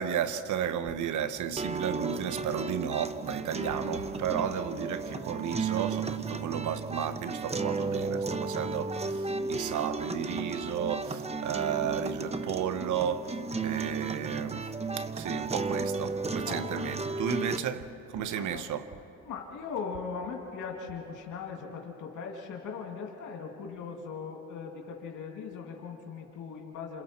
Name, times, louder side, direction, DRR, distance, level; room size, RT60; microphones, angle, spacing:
voice 1, 0.0-14.7 15.0-18.8, right 8 dB, 75° right, 1.1 m, -33 dB
sound 1, 1.6-17.6, right 4 dB, 20° right, 0.9 m, -34 dB
voice 2, 16.4-16.8 17.4-17.9 18.4-18.7 19.2-27.0, left 5 dB, 80° left, 2.5 m, -40 dB
28.5 x 27.0 x 4.4 m
cardioid pair, 90°, 30 cm